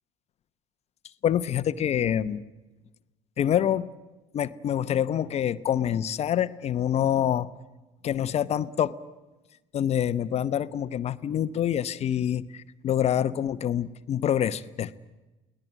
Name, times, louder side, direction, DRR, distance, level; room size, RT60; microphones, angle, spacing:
voice 1, 1.2-2.4 3.4-3.9 4.3-7.5 8.0-8.9 9.7-15.0, left 10 dB, 45° left, 13 dB, 0.9 m, -26 dB
23.0 x 18.5 x 9.0 m, 1.1 s
hypercardioid pair, 80°, 16 cm